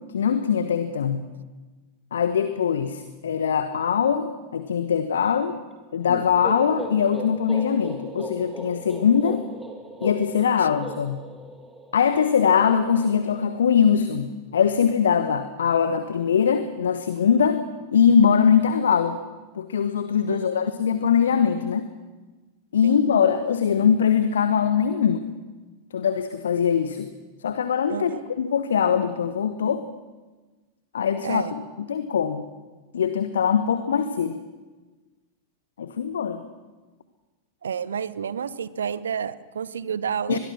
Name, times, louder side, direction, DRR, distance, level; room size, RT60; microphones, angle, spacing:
voice 1, 0.1-1.3 2.1-5.6 5.9-9.4 10.0-11.2 11.9-17.6 17.9-19.2 19.5-21.9 22.7-25.2 25.9-27.1 27.4-29.8 30.9-31.4 31.9-32.4 32.9-34.4 35.8-36.4 40.3-40.4, left 7 dB, 65° left, 10 dB, 1.1 m, -22 dB
sound 1, 6.1-13.8, right 1 dB, 5° right, 3.1 m, -38 dB
voice 2, 20.3-20.7 22.8-23.0 27.9-28.2 31.2-31.5 37.6-40.4, right 7 dB, 70° right, 18 dB, 0.8 m, -30 dB
23.5 x 21.5 x 6.2 m, 1.3 s
figure-of-eight pair, 90°, 0 cm